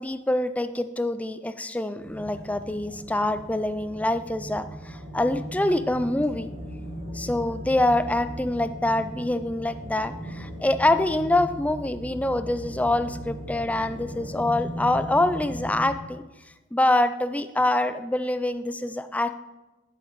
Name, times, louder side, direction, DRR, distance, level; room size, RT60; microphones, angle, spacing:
voice 1, 0.0-6.5 7.1-16.2 16.7-19.3, left 1 dB, 10° left, 11 dB, 0.4 m, -25 dB
sound 1, 2.0-15.9, equal, 65° right, 2.7 m, -38 dB
9.6 x 8.7 x 3.1 m, 1.0 s
head